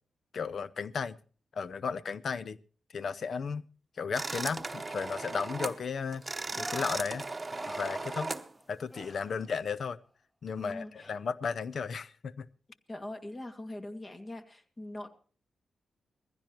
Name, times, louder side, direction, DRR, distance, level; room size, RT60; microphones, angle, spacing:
voice 1, 0.3-1.2 1.5-2.6 2.9-3.7 4.0-6.2 6.5-7.3 7.8-8.3 8.7-10.0 10.4-12.5, left 5 dB, 65° left, 0.6 m, -34 dB
sound 1, 4.1-5.8 6.1-8.5, right 3 dB, 35° right, 0.9 m, -37 dB
sound 2, 6.5-8.6 8.9-9.5 9.8-9.9 10.7-11.2, equal, ahead, 0.9 m, -45 dB
voice 2, 10.6-11.1 12.9-15.1, left 1 dB, 35° left, 2.1 m, -42 dB
20.5 x 15.5 x 3.0 m
supercardioid pair, 40°, 0 cm